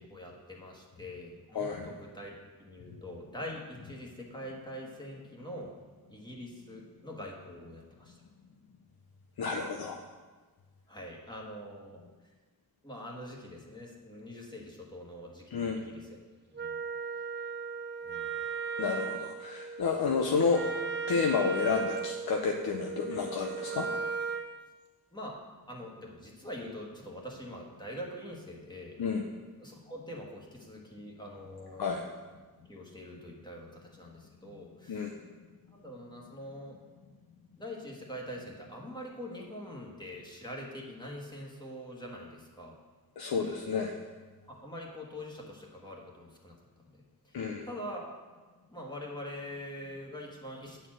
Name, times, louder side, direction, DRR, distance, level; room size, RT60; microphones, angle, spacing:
voice 1, 0.0-5.7 6.1-8.2 10.9-12.0 12.8-16.2 16.5-16.7 18.0-18.3 25.1-25.4 25.7-29.0 29.6-31.9 32.7-35.1 35.7-36.8 37.6-42.7 44.5-46.6 46.9-47.3 47.7-48.1 48.7-50.9, equal, 10° left, -2 dB, 1.4 m, -44 dB
voice 2, 1.5-1.9 9.4-10.0 15.5-15.8 18.8-20.7 21.1-23.9 29.0-29.2 31.8-32.0 34.9-35.1 43.2-44.0 47.3-47.7, left 5 dB, 80° left, 2 dB, 0.7 m, -30 dB
Wind instrument woodwind instrument, 16.5-24.5, right 5 dB, 30° right, 0.5 m, -36 dB
8.9 x 4.3 x 7.5 m, 1.3 s
wide cardioid pair, 150°, 37 cm